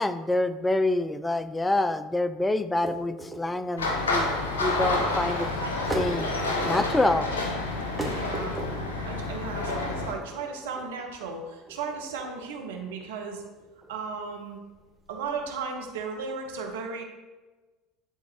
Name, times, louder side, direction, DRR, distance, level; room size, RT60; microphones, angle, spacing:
voice 1, 0.0-4.3 4.6-5.6 5.9-6.3 6.6-7.3, left 2 dB, 15° left, 13 dB, 0.4 m, -26 dB
sound 1, 2.7-15.6, right 1 dB, 10° right, 1.4 m, -40 dB
sound 2, 3.8-10.1, left 2 dB, 80° left, 1.0 m, -29 dB
voice 2, 8.0-8.6 9.0-13.4 13.9-14.6 15.1-17.0, right 5 dB, 75° right, 3 dB, 0.9 m, -35 dB
11.0 x 3.9 x 2.8 m, 1.2 s
hypercardioid pair, 70°, 0 cm